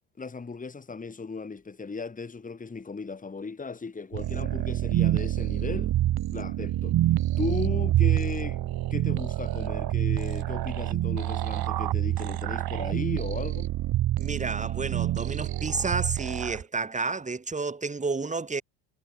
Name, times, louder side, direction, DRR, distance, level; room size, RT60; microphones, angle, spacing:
voice 1, 0.2-5.9 6.3-7.0 7.4-8.6 8.9-13.7, left 4 dB, 15° left, 3.8 m, -36 dB
sound 1, 4.1-16.6, right 14 dB, 50° right, 4.5 m, -27 dB
voice 2, 14.2-18.6, right 4 dB, 15° right, 4.7 m, -31 dB
supercardioid pair, 105°, 47 cm